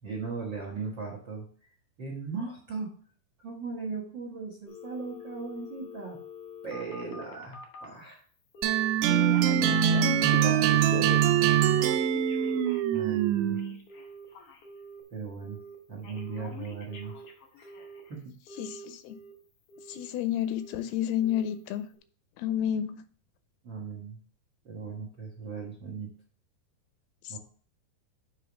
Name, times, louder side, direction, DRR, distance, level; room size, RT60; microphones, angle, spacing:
voice 1, 0.0-1.4 2.0-2.9 3.4-6.2 6.6-8.2 12.9-13.6 15.1-15.6 15.9-17.1 17.6-17.7 18.1-18.3 23.6-24.2 24.6-26.1 27.3-27.4, right 4 dB, 70° right, -2 dB, 1.0 m, -38 dB
Telephone, 4.7-7.9 8.5-8.9 9.2-10.6 10.9-11.3 11.6-15.0 15.4-15.8 16.0-18.1 18.5-19.3 19.7-20.1 20.4-20.8 21.2-21.6 21.9-22.0, left 1 dB, 65° left, 1.4 m, -46 dB
sound 1, 8.6-13.7, right 10 dB, 90° right, 2.5 m, -23 dB
voice 2, 9.1-11.2 18.6-19.2 19.9-21.9 22.4-23.0 27.2-27.4, left 10 dB, 85° left, 11 dB, 2.6 m, -32 dB
7.2 x 3.5 x 6.0 m, 0.43 s
omnidirectional pair, 4.4 m